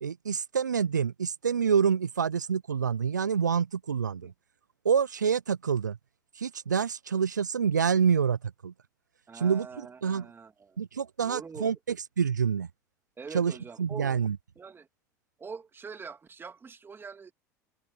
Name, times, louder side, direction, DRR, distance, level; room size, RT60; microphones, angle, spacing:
voice 1, 0.0-4.3 4.8-6.0 6.3-8.7 9.3-10.3 10.8-12.7 13.3-14.4, right 7 dB, 90° right, 0.5 m, -27 dB
voice 2, 9.3-10.8 11.2-11.7 13.2-14.2 14.6-14.9 15.4-17.3, right 5 dB, 25° right, 3.0 m, -44 dB
figure-of-eight pair, 75°, 9 cm